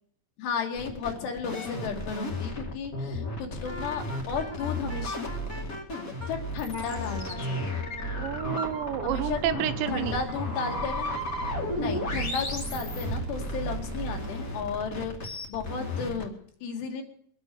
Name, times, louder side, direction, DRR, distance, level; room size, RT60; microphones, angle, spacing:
voice 1, 0.4-5.2 6.3-7.8 9.0-9.4 9.9-11.1 11.8-17.0, left 5 dB, 75° left, 3 dB, 3.9 m, -34 dB
sound 1, 0.7-16.2, left 1 dB, 35° left, 1.5 m, -33 dB
Wind instrument woodwind instrument, 3.6-6.3 6.7-9.1, left 1 dB, 5° left, 1.6 m, -42 dB
voice 2, 8.2-10.2, right 11 dB, 85° right, 9 dB, 3.2 m, -30 dB
sound 2, 9.8-14.7, right 4 dB, 65° right, 3.3 m, -41 dB
23.5 x 8.2 x 6.8 m, 0.62 s
omnidirectional pair, 5.0 m